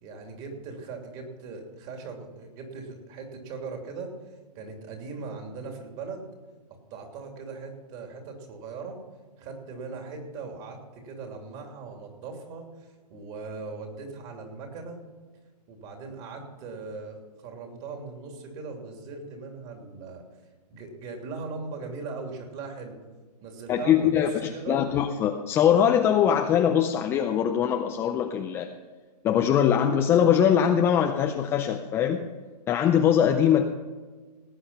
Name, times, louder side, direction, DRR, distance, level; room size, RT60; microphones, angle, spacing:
voice 1, 0.0-4.1 4.5-6.3 6.9-9.0 9.4-10.8 11.0-12.6 13.1-15.0 15.7-20.2 20.7-23.0 23.4-24.8, right 4 dB, 30° right, 3 dB, 3.0 m, -39 dB
voice 2, 23.7-28.7 29.2-32.3 32.7-33.7, left 9 dB, 10° left, 4 dB, 0.4 m, -22 dB
18.5 x 8.8 x 5.6 m, 1.4 s
hypercardioid pair, 150°, 21 cm